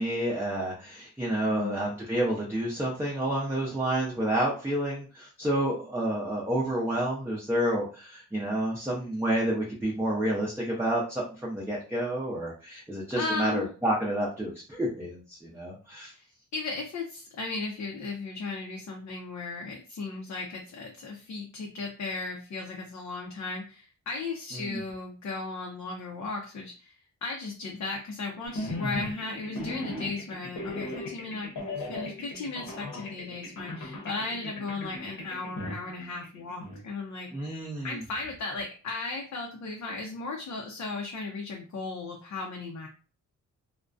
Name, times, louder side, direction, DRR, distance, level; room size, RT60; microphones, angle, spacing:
voice 1, 0.0-16.1 24.5-24.8 37.3-38.0, right 1 dB, 10° right, -4 dB, 0.6 m, -29 dB
voice 2, 1.4-1.8 13.2-13.7 16.0-16.2 16.5-26.9 27.2-31.5 31.8-37.3 37.8-42.9, left 3 dB, 60° left, 1 dB, 0.5 m, -36 dB
sound 1, 28.5-36.8, left 1 dB, 75° left, 0.9 m, -37 dB
2.3 x 2.1 x 2.5 m, 0.37 s
cardioid pair, 95°, 32 cm